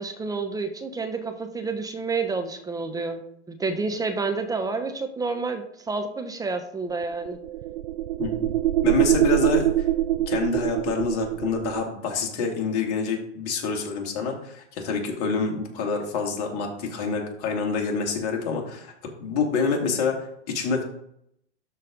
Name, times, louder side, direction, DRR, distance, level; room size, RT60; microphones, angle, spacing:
voice 1, 0.0-3.2 3.5-7.4, right 4 dB, 10° right, 6 dB, 0.9 m, -29 dB
sound 1, 6.9-11.9, right 13 dB, 65° right, 0.5 m, -24 dB
voice 2, 8.2-8.5 8.8-9.9 10.3-20.8, left 5 dB, 45° left, 1 dB, 2.4 m, -27 dB
12.5 x 4.3 x 3.9 m, 0.72 s
hypercardioid pair, 115°, 34 cm